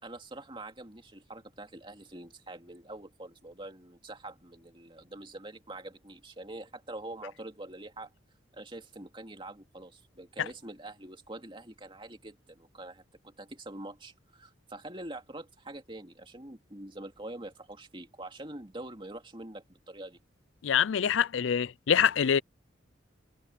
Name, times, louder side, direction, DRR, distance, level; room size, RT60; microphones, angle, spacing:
voice 1, 0.0-8.1 8.5-20.2, right 2 dB, 25° right, 2.7 m, -45 dB
voice 2, 20.6-22.4, left 8 dB, 80° left, 0.4 m, -25 dB
head